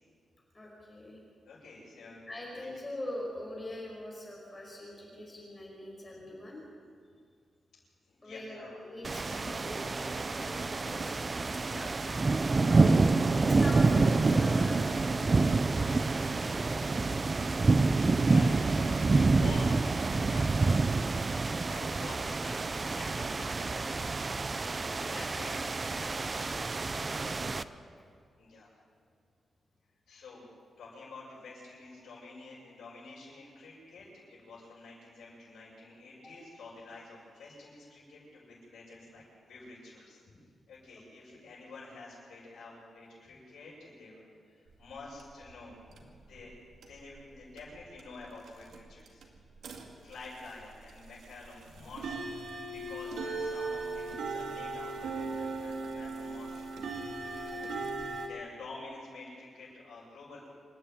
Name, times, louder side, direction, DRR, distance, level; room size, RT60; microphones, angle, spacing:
voice 1, 0.5-1.2 2.3-6.6 8.2-11.1 12.5-13.0 13.3-17.1 24.7-25.2 27.2-28.0 36.2-36.3 37.5-37.6 57.5-57.6, left 1 dB, 20° left, -3 dB, 5.1 m, -43 dB
voice 2, 1.4-2.2 2.5-2.7 8.1-8.8 10.2-10.6 11.0-11.1 11.6-12.4 18.0-20.8 21.6-24.1 25.1-26.7 28.4-28.7 30.1-30.5 30.8-40.4 40.7-44.3 44.8-46.0 46.3-49.2 49.8-52.3 52.6-56.7 58.2-60.4, left 3 dB, 85° left, -8 dB, 6.6 m, -49 dB
sound 1, 9.0-27.6, right 3 dB, 25° right, 0.5 m, -27 dB
sound 2, 44.7-46.5 46.8-47.3 47.6-58.3, right 3 dB, 85° right, 2.4 m, -38 dB
26.5 x 10.5 x 9.2 m, 2.1 s
wide cardioid pair, 155°, 0 cm